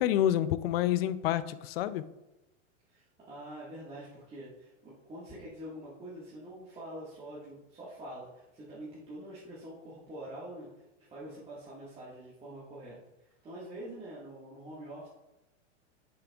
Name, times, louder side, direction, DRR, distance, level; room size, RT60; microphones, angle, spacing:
voice 1, 0.0-2.0, left 12 dB, 50° left, 0.5 m, -28 dB
voice 2, 2.9-10.8 11.1-15.1, right 1 dB, 15° right, 1.6 m, -45 dB
8.8 x 6.9 x 2.3 m
supercardioid pair, 145°, 37 cm